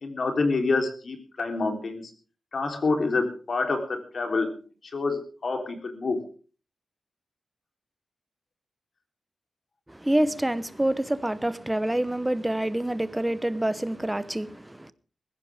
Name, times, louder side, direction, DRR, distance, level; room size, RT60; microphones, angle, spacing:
voice 1, 0.0-2.1 2.5-4.5 4.9-6.2, left 3 dB, 55° left, 3.6 m, -27 dB
voice 2, 9.9-14.9, right 1 dB, 10° right, 1.0 m, -27 dB
20.5 x 15.5 x 3.6 m
wide cardioid pair, 120°, 0 cm